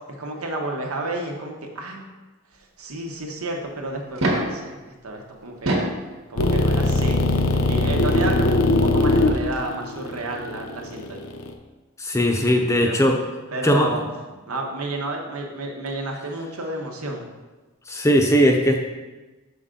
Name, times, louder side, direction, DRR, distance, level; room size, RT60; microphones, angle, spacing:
voice 1, 0.1-2.0 2.8-5.9 6.3-7.4 7.7-11.2 12.7-13.0 13.5-14.0 14.5-17.3, right 2 dB, 90° right, 1 dB, 1.1 m, -31 dB
sound 1, 4.0-4.6 5.5-6.0 7.3-7.4 9.2-9.3 9.5-9.6, right 1 dB, 70° right, 1.2 m, -24 dB
sound 2, 6.4-11.5, left 2 dB, 80° left, 0.6 m, -20 dB
voice 2, 12.0-13.2 13.6-13.9 17.9-18.8, equal, 15° left, 3 dB, 0.6 m, -19 dB
6.5 x 5.6 x 3.8 m, 1.2 s
head